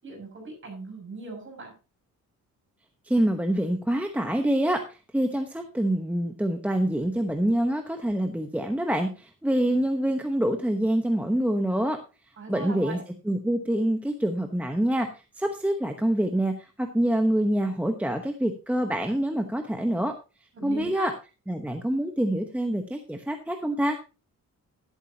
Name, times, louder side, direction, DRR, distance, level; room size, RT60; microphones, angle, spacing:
voice 1, 0.0-1.7 12.4-13.0 20.5-21.1, right 4 dB, 35° right, 1 dB, 6.6 m, -39 dB
voice 2, 3.0-12.0 12.5-13.0 13.3-15.1 15.4-20.1 20.6-21.1 21.5-24.0, right 1 dB, 5° right, 4 dB, 0.9 m, -26 dB
12.0 x 11.5 x 2.8 m, 0.31 s
wide cardioid pair, 165°, 33 cm